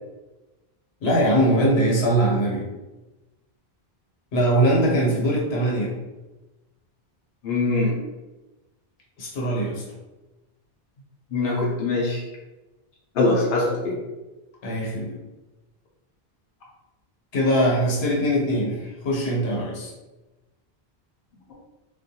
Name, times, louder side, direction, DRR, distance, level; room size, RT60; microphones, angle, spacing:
voice 1, 1.0-2.6 4.3-5.9 9.2-9.8 14.6-15.1 17.3-19.9, right 1 dB, 90° left, -3 dB, 1.1 m, -21 dB
voice 2, 7.4-8.0 11.3-12.3 13.1-14.0, left 2 dB, 75° left, -4 dB, 0.8 m, -22 dB
2.3 x 2.2 x 2.7 m, 1.1 s
omnidirectional pair, 1.0 m